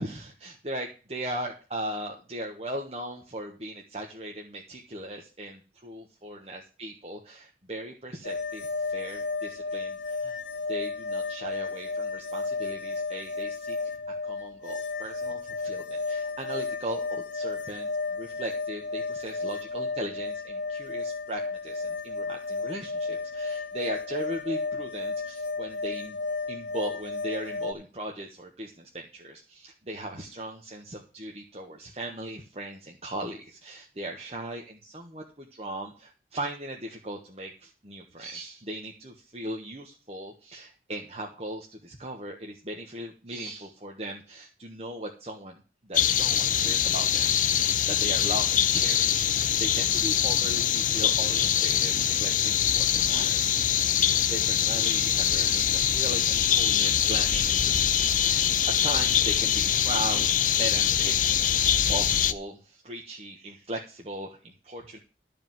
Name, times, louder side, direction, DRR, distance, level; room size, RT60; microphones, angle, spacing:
voice 1, 0.0-10.4 10.7-14.0 14.2-26.2 26.5-53.7 54.2-58.5 58.8-60.3 60.6-61.5 61.9-65.0, right 1 dB, 35° right, 0 dB, 1.3 m, -38 dB
sound 1, 8.2-27.7, left 3 dB, 85° left, 2.0 m, -33 dB
sound 2, 45.9-62.3, left 9 dB, 45° left, 0.7 m, -24 dB
13.0 x 5.0 x 7.7 m, 0.34 s
head